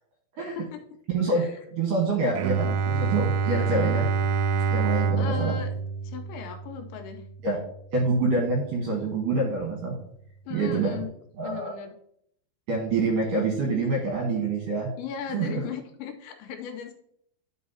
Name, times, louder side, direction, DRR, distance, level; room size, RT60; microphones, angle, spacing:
voice 1, 1.1-1.4 1.7-4.1 4.7-5.6 7.4-7.6 7.9-10.0 10.5-10.9 11.4-11.7 12.7-14.9 15.3-15.6, right 3 dB, 65° right, -1 dB, 2.3 m, -26 dB
Bowed string instrument, 2.3-8.0, right 5 dB, 85° right, 2.8 m, -27 dB
voice 2, 5.2-5.7 6.0-7.3 10.5-11.1 11.4-11.9 15.0-16.9, left 7 dB, 85° left, 4 dB, 2.9 m, -37 dB
12.0 x 5.4 x 2.8 m, 0.71 s
omnidirectional pair, 5.5 m